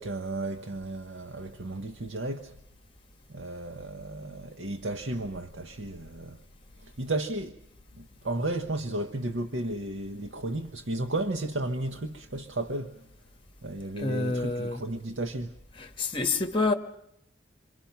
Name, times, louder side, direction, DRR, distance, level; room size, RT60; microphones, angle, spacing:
voice 1, 0.0-2.5 3.3-6.4 6.8-7.6 8.0-13.1 13.6-15.5, right 2 dB, 80° right, 1.1 m, -33 dB
voice 2, 14.0-14.8 15.8-16.7, left 3 dB, 25° left, 1.6 m, -28 dB
28.0 x 23.0 x 5.8 m
head